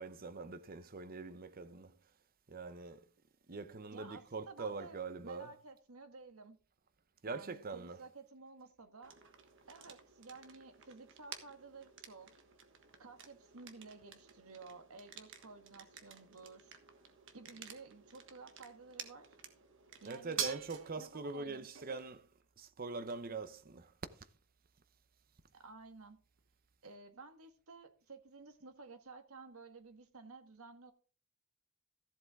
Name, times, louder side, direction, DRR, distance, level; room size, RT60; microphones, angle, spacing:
voice 1, 0.0-2.0 2.5-3.1 3.5-5.5 7.2-8.1 20.1-22.3 22.6-23.9, right 4 dB, 45° right, 0.8 m, -43 dB
voice 2, 3.9-5.0 5.2-6.6 7.2-9.2 9.7-12.3 13.0-16.8 17.3-19.4 20.0-22.0 25.5-26.2 26.8-30.9, right 3 dB, 80° right, 1.5 m, -54 dB
sound 1, 9.0-26.8, right 7 dB, 60° right, 1.4 m, -50 dB
14.5 x 7.8 x 3.6 m
head